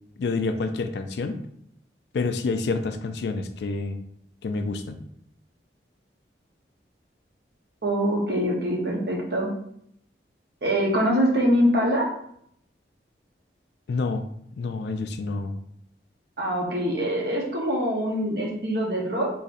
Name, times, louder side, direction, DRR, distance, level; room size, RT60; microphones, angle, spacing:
voice 1, 0.2-1.4 2.1-4.0 4.4-5.0 13.9-14.3 14.6-15.5, left 3 dB, 75° left, 8 dB, 0.3 m, -28 dB
voice 2, 7.8-9.5 10.6-12.1 16.4-19.3, equal, 60° right, -1 dB, 0.9 m, -24 dB
4.1 x 2.7 x 2.5 m, 0.71 s
head